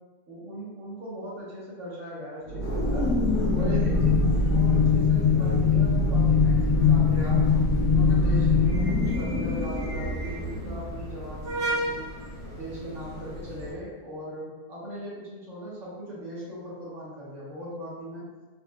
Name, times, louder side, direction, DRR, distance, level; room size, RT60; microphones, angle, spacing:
voice 1, 0.3-3.1 3.5-7.4 7.8-12.1 12.5-18.3, right 1 dB, 50° right, -8 dB, 1.4 m, -39 dB
sound 1, 2.5-10.7, left 4 dB, 85° left, 1.2 m, -22 dB
sound 2, 2.6-13.7, right 1 dB, 20° right, 1.1 m, -36 dB
4.4 x 3.3 x 2.3 m, 1.2 s
omnidirectional pair, 1.7 m